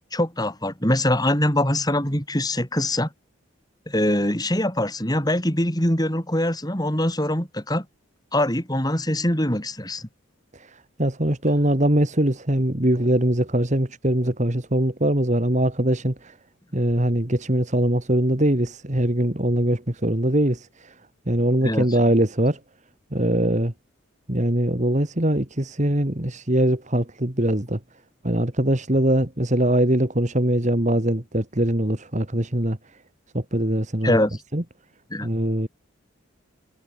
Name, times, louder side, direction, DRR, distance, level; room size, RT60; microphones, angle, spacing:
voice 1, 0.1-3.1 3.9-7.9 8.3-10.1 21.6-21.9 34.0-34.4 35.1-35.3, left 1 dB, 20° left, 5.7 m, -23 dB
voice 2, 10.5-16.3 16.7-20.9 21.3-22.6 23.1-23.7 24.3-27.8 28.2-32.8 33.3-34.2 34.5-34.6 35.2-35.7, right 1 dB, 35° right, 2.0 m, -22 dB
head